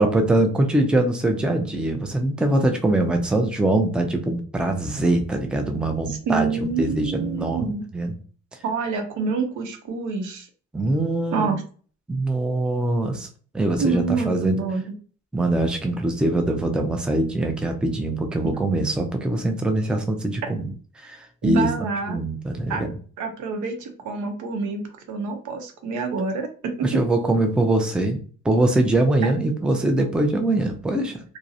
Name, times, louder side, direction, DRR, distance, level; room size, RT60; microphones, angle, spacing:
voice 1, 0.0-7.7 7.9-8.1 10.7-11.5 12.1-13.3 13.5-14.6 15.3-20.7 21.0-21.7 22.1-22.9 26.8-28.2 28.4-31.2, right 2 dB, 5° right, 4 dB, 0.4 m, -23 dB
voice 2, 6.1-7.8 8.6-10.5 11.3-11.6 13.8-14.8 21.4-22.2 22.7-22.8 23.2-26.9 29.2-29.3, right 4 dB, 80° right, 5 dB, 0.6 m, -27 dB
2.3 x 2.0 x 2.6 m, 0.41 s
cardioid pair, 90°, 30 cm